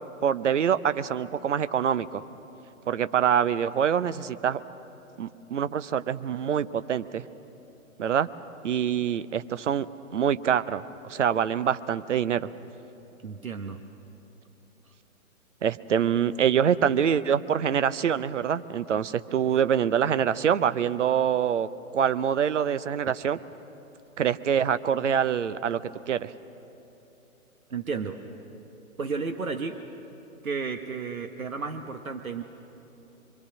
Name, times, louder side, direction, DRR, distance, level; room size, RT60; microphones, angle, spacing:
voice 1, 0.2-2.2 2.9-4.6 5.2-7.2 8.0-8.3 8.6-9.9 10.1-12.5 15.6-23.4 24.2-25.8 26.1-26.3, right 8 dB, 55° right, 14 dB, 0.8 m, -25 dB
voice 2, 13.2-13.8 27.7-28.2 29.0-29.8 30.4-32.4, right 5 dB, 75° right, 7 dB, 1.2 m, -32 dB
25.0 x 24.5 x 6.3 m, 3.0 s
figure-of-eight pair, 125°, 42 cm